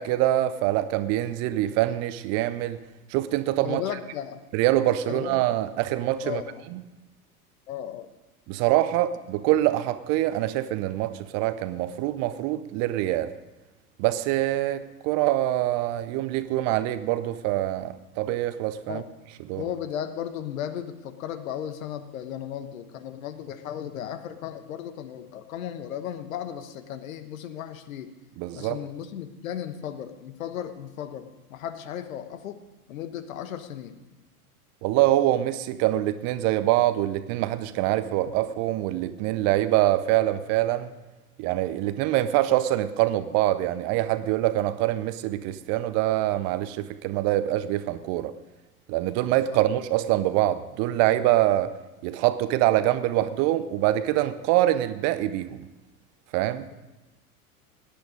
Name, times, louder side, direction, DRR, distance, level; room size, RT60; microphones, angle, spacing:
voice 1, 0.0-2.8 3.1-3.8 4.5-6.4 6.7-6.8 8.5-13.3 14.0-19.0 19.5-19.6 28.4-28.8 34.8-40.9 41.4-48.3 48.9-51.7 52.0-55.6 56.3-56.7, right 14 dB, 35° right, 13 dB, 0.6 m, -24 dB
voice 2, 3.6-4.4 5.1-5.4 6.2-6.6 7.7-8.1 18.9-19.1 19.6-28.1 28.5-32.6 32.9-34.0 49.5-49.6, left 10 dB, 60° left, 11 dB, 1.2 m, -35 dB
17.0 x 10.5 x 5.2 m, 1.1 s
figure-of-eight pair, 80°, 45 cm